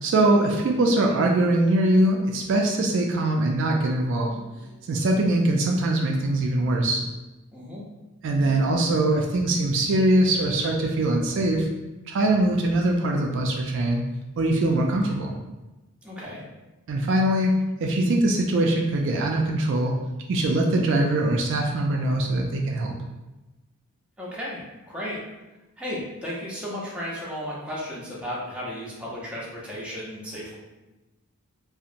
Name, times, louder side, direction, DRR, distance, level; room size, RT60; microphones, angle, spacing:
voice 1, 0.0-4.4 4.9-7.0 8.2-11.7 12.1-14.0 14.4-15.3 16.9-17.5 17.8-19.9 20.3-22.9, right 1 dB, 60° right, 1 dB, 0.3 m, -22 dB
voice 2, 7.5-7.8 16.0-16.4 24.2-25.2 25.8-30.6, equal, 5° right, -6 dB, 0.5 m, -34 dB
2.8 x 2.1 x 2.5 m, 1.1 s
head